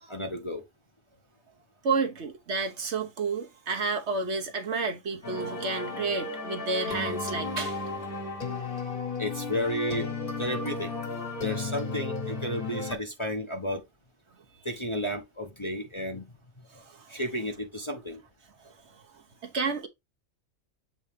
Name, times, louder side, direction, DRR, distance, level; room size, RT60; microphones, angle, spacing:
voice 1, 0.1-0.6 9.2-10.1 10.4-10.9 11.4-13.8 14.6-16.3 17.1-18.2, equal, 25° left, 0.9 m, -32 dB
voice 2, 1.8-7.8 11.5-11.6 16.7-17.2 18.6-19.9, right 4 dB, 60° right, 1.2 m, -31 dB
sound 1, 5.2-12.9, left 3 dB, 45° left, 1.5 m, -34 dB
7.6 x 3.9 x 3.5 m
omnidirectional pair, 1.4 m